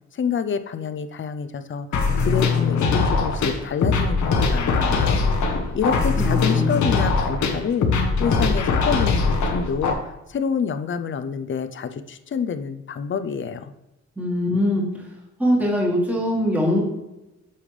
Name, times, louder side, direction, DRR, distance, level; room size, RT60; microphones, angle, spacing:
voice 1, 0.1-5.2 5.7-10.0 10.3-13.7, left 6 dB, 45° left, 10 dB, 0.6 m, -27 dB
sound 1, 1.9-9.9, left 4 dB, 85° left, 1.2 m, -21 dB
voice 2, 5.9-6.7 14.2-15.0 15.4-16.8, equal, 5° right, -3 dB, 1.6 m, -22 dB
8.5 x 5.6 x 3.3 m, 0.97 s
cardioid pair, 125°, 29 cm